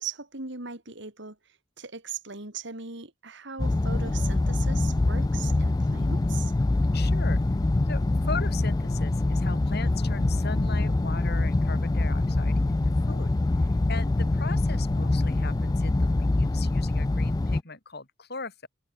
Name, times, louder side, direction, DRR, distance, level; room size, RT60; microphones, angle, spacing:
voice 1, 0.0-6.5, right 5 dB, 60° right, 3.6 m, -39 dB
sound 1, 3.6-17.6, left 2 dB, 20° left, 0.3 m, -24 dB
voice 2, 6.9-7.4 7.9-13.3 13.6-18.7, left 4 dB, 50° left, 3.8 m, -39 dB
head